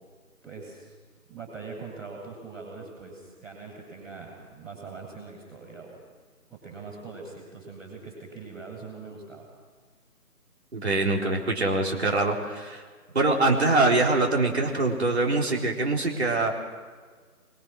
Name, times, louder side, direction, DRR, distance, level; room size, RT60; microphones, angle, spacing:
voice 1, 0.4-0.9 1.3-6.0 6.5-9.5, right 4 dB, ahead, -17 dB, 2.4 m, -42 dB
voice 2, 10.7-12.8 13.1-16.5, right 2 dB, 45° right, -1 dB, 4.1 m, -24 dB
25.0 x 23.5 x 6.3 m, 1.5 s
figure-of-eight pair, 170°, 45 cm